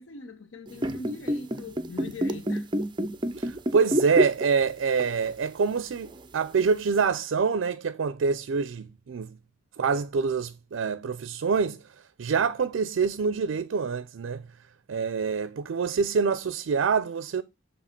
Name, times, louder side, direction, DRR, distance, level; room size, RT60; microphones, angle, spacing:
voice 1, 0.0-2.7, left 3 dB, 75° left, 0.8 m, -41 dB
sound 1, 0.7-4.7 5.0-5.2 6.1-6.2, right 1 dB, 25° right, 0.5 m, -27 dB
voice 2, 3.4-9.4 9.8-11.8 12.2-14.5 14.9-17.4, right 5 dB, 70° right, 0.4 m, -26 dB
7.3 x 3.4 x 5.7 m
head